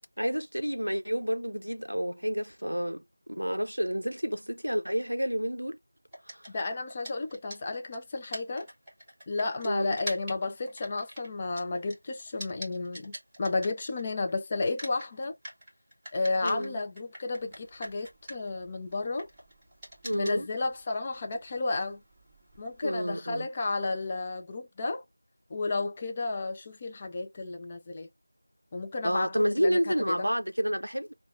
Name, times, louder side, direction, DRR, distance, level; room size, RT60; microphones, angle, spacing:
voice 1, 0.2-3.0 3.3-5.8 6.3-6.5 9.6-10.0 16.4-16.8 20.0-20.5 22.8-23.5 29.0-31.1, equal, 85° right, 0.4 m, -29 dB
sound 1, 6.1-14.3 14.6-22.8, equal, 5° right, 1.3 m, -45 dB
voice 2, 6.5-8.7 9.3-15.3 16.1-19.3 20.1-22.0 22.6-25.0 25.5-28.1 28.7-29.8 30.1-30.3, left 3 dB, 15° left, 0.4 m, -32 dB
5.6 x 2.3 x 2.4 m
figure-of-eight pair, 170°, 0 cm